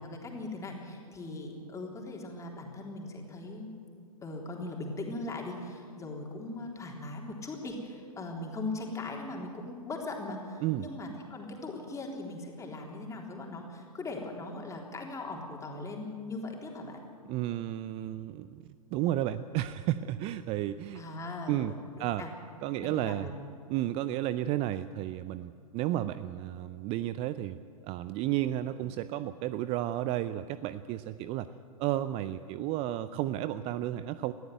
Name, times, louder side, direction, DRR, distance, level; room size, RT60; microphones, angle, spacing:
voice 1, 0.0-3.7 4.2-17.0 20.9-22.3 22.8-23.5, left 2 dB, 15° left, 0 dB, 3.6 m, -39 dB
voice 2, 17.3-18.6 18.9-21.0 21.5-21.7 22.0-22.2 22.6-23.3 23.7-27.6 27.8-31.5 31.8-34.3, right 13 dB, 30° right, 14 dB, 0.5 m, -32 dB
20.5 x 14.0 x 9.3 m, 2.5 s
figure-of-eight pair, 105°, 19 cm